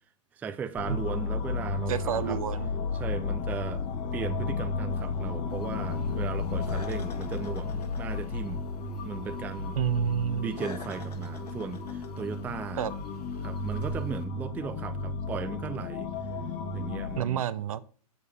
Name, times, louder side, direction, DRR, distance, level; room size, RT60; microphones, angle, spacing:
voice 1, 0.3-2.4 2.9-3.8 4.1-8.7 9.1-9.8 10.3-12.8 13.4-16.1 16.7-17.4, right 6 dB, 10° right, 0.4 m, -37 dB
sound 1, 0.8-17.2, left 4 dB, 35° left, 1.2 m, -33 dB
voice 2, 1.9-2.7 9.8-10.5 12.8-12.9 17.2-17.8, right 9 dB, 65° right, 0.7 m, -29 dB
sound 2, 5.5-14.2, left 2 dB, 90° left, 1.5 m, -45 dB
7.2 x 6.5 x 3.4 m
hypercardioid pair, 125°, 20 cm